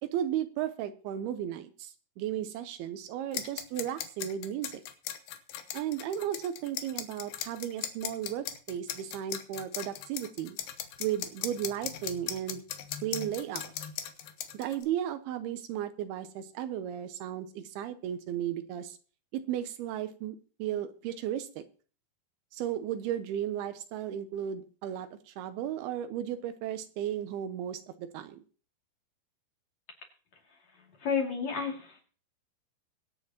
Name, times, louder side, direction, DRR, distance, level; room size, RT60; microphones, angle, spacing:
voice 1, 0.0-4.8 5.7-10.6 11.0-12.6 13.0-13.7 14.5-19.0 19.3-21.6 22.5-28.4, right 10 dB, 80° right, 10 dB, 2.6 m, -35 dB
sound 1, 3.3-14.8, left 10 dB, 75° left, 2.9 m, -38 dB
voice 2, 31.0-32.0, left 6 dB, 45° left, 0 dB, 3.5 m, -31 dB
23.5 x 8.5 x 2.9 m, 0.39 s
omnidirectional pair, 4.7 m